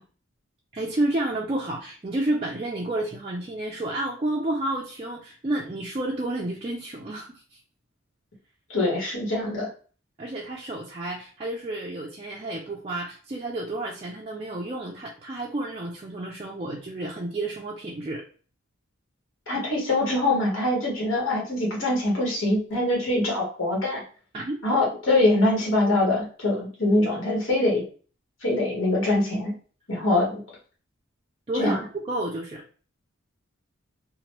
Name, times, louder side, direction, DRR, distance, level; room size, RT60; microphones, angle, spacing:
voice 1, 0.7-7.4 10.2-18.2 24.3-24.6 31.5-32.6, right 1 dB, 30° right, -3 dB, 0.4 m, -30 dB
voice 2, 8.7-9.7 19.5-24.0 24.6-27.8 28.4-29.5 29.9-30.4 31.5-31.8, left 2 dB, 70° left, -3 dB, 1.2 m, -23 dB
2.9 x 2.2 x 2.9 m, 0.40 s
head